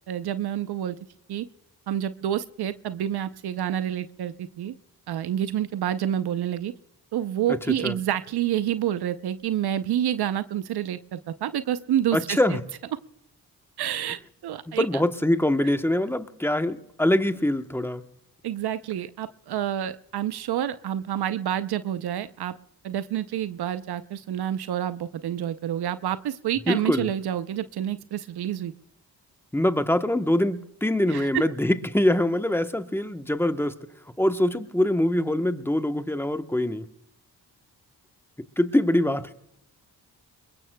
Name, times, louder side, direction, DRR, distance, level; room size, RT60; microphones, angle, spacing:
voice 1, 0.1-1.0 1.3-1.5 1.9-4.7 5.1-6.7 7.1-12.6 13.8-15.0 18.4-22.5 22.8-28.7 31.1-31.4, right 11 dB, 75° right, 12 dB, 0.6 m, -28 dB
voice 2, 7.7-8.0 12.1-12.6 14.7-18.0 26.7-27.1 29.5-33.8 34.2-36.9 38.6-39.3, left 1 dB, 5° left, 9 dB, 1.0 m, -24 dB
22.0 x 21.0 x 2.2 m, 0.78 s
cardioid pair, 60°, 39 cm